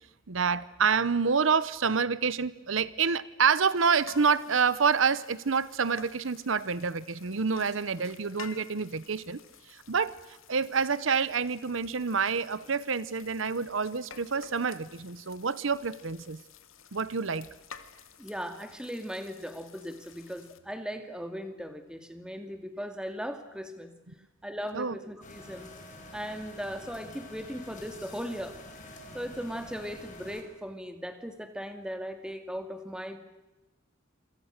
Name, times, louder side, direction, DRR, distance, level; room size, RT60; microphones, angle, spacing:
voice 1, 0.3-9.4 9.7-10.1 10.5-16.4 16.9-17.5 24.7-25.0, right 5 dB, 75° right, 18 dB, 0.8 m, -27 dB
sound 1, 3.8-20.6, left 6 dB, 90° left, 2.1 m, -52 dB
voice 2, 18.2-23.9 24.4-25.7 26.1-28.6 29.1-33.2, equal, 5° right, 7 dB, 2.4 m, -38 dB
sound 2, 25.2-30.4, left 1 dB, 40° left, 5.5 m, -47 dB
27.5 x 26.0 x 6.6 m, 1.0 s
head